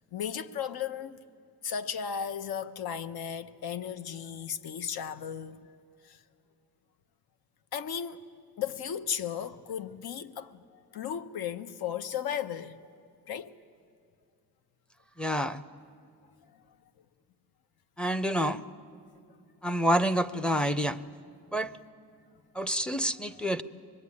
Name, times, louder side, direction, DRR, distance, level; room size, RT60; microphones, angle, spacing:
voice 1, 0.1-1.2 1.6-5.6 6.0-6.2 7.7-8.2 8.6-12.8 13.3-13.5, left 8 dB, 70° left, 1.0 m, -35 dB
voice 2, 15.2-15.6 18.0-18.6 19.6-21.0 21.5-21.7 22.5-23.6, equal, 5° left, 0.6 m, -28 dB
25.0 x 21.5 x 9.7 m
wide cardioid pair, 155°, 38 cm